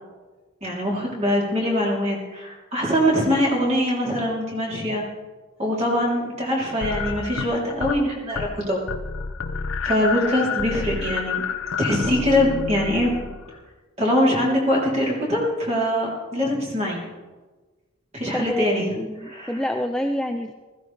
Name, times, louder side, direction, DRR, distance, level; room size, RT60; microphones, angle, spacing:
voice 1, 0.6-5.0 5.6-8.8 9.8-11.4 11.8-13.1 14.0-17.0 18.1-18.9 19.2-19.6, equal, 30° right, -3 dB, 3.2 m, -23 dB
sound 1, 6.8-8.0 8.3-8.6 8.9-13.6, left 5 dB, 65° left, 0.7 m, -29 dB
voice 2, 18.3-18.7 19.0-20.5, equal, 5° left, 4 dB, 0.3 m, -27 dB
16.0 x 15.0 x 3.3 m, 1.3 s
head